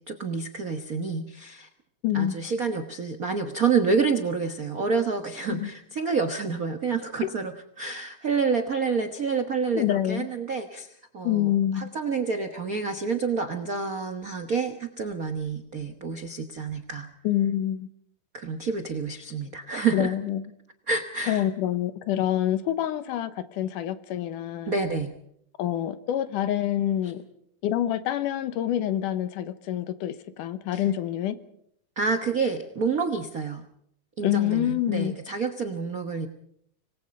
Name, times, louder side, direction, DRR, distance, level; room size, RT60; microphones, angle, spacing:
voice 1, 0.0-1.7 2.1-17.1 18.3-20.1 20.9-21.4 24.7-25.1 27.0-27.1 30.7-30.8 32.0-33.6 34.2-36.3, right 5 dB, 80° right, 6 dB, 0.7 m, -28 dB
voice 2, 2.0-2.4 5.5-5.7 7.2-7.3 9.8-10.3 11.2-11.9 17.2-17.9 19.9-20.5 21.3-24.7 25.6-27.2 27.6-31.4 34.2-35.1, left 12 dB, 90° left, 12 dB, 2.7 m, -26 dB
26.0 x 20.0 x 5.3 m, 0.71 s
omnidirectional pair, 3.6 m